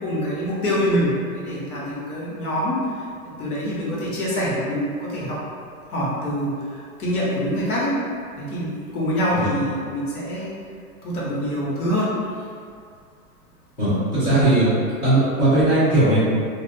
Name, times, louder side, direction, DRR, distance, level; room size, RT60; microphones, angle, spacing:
voice 1, 0.0-2.8 3.4-5.4 5.9-6.5 7.0-7.9 8.4-10.5 11.0-12.1, equal, 75° left, -6 dB, 1.0 m, -25 dB
voice 2, 13.8-14.7 15.0-16.2, right 1 dB, 5° left, -17 dB, 0.3 m, -18 dB
2.3 x 2.2 x 2.6 m, 2.2 s
hypercardioid pair, 135°, 45 cm